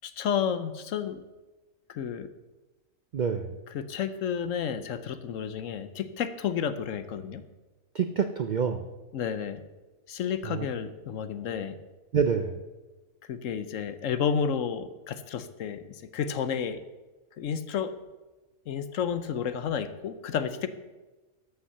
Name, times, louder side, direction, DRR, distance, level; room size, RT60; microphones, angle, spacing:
voice 1, 0.0-1.2 1.9-2.3 3.7-7.4 9.1-9.6 10.1-11.8 13.3-16.8 17.4-17.9 18.7-20.7, left 7 dB, 70° left, 12 dB, 1.0 m, -31 dB
voice 2, 3.1-3.5 7.9-8.9 10.5-10.7 12.1-12.6, right 6 dB, 60° right, 8 dB, 0.4 m, -27 dB
13.0 x 5.7 x 6.6 m, 1.2 s
omnidirectional pair, 1.5 m